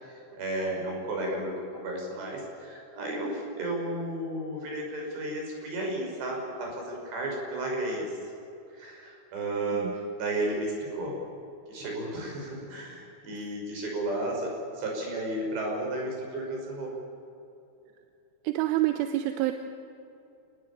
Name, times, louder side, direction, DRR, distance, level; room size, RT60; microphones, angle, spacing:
voice 1, 0.0-8.1 8.7-11.2 11.7-16.9, right 1 dB, 55° right, 0 dB, 8.0 m, -33 dB
voice 2, 18.5-19.5, right 15 dB, 80° right, 8 dB, 3.3 m, -26 dB
29.0 x 19.5 x 8.8 m, 2.7 s
omnidirectional pair, 5.9 m